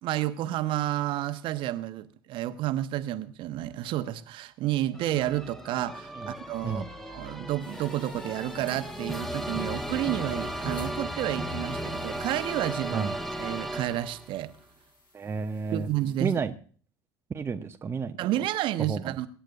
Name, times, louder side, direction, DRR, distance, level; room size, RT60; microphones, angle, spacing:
voice 1, 0.0-6.8 7.1-13.1 13.4-14.5 15.7-16.3 18.2-19.3, right 14 dB, 45° right, 11 dB, 1.0 m, -30 dB
sound 1, 4.9-14.4, equal, 5° left, 1.3 m, -36 dB
sound 2, 7.6-16.4, left 1 dB, 80° left, 6.4 m, -55 dB
voice 2, 15.1-15.9 16.2-16.6 17.3-18.4 18.8-19.1, right 5 dB, 20° right, 7 dB, 0.8 m, -32 dB
24.0 x 10.0 x 2.5 m, 0.42 s
figure-of-eight pair, 70°, 12 cm